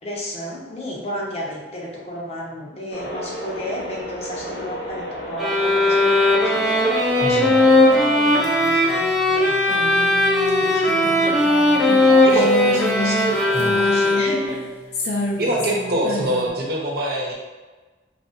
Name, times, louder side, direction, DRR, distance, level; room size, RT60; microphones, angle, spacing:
voice 1, 0.0-10.3 10.6-11.4 11.8-14.7, equal, 35° left, -2 dB, 0.8 m, -32 dB
sound 1, 2.9-8.0, equal, 90° left, 1.0 m, -33 dB
sound 2, 5.4-14.6, left 1 dB, ahead, 0.6 m, -18 dB
voice 2, 7.2-7.6 12.2-12.4 13.5-13.8 15.4-17.3, right 1 dB, 60° right, -2 dB, 0.9 m, -24 dB
sound 3, 7.3-16.5, left 2 dB, 70° left, 0.7 m, -31 dB
5.0 x 2.8 x 2.6 m, 1.3 s
head